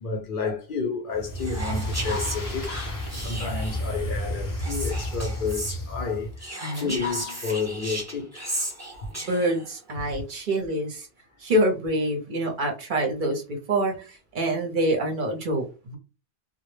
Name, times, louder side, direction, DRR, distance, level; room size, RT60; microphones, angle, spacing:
voice 1, 0.0-8.5, left 5 dB, 60° left, 0.7 m, -31 dB
sound 1, 1.1-6.4, equal, 25° left, 0.5 m, -31 dB
Whispering, 1.4-3.9 4.6-5.8 6.4-9.7, right 1 dB, 20° right, 0.6 m, -34 dB
voice 2, 6.6-6.9 9.1-11.1 11.4-16.0, right 1 dB, 55° right, 0.8 m, -26 dB
2.1 x 2.0 x 3.0 m
omnidirectional pair, 1.0 m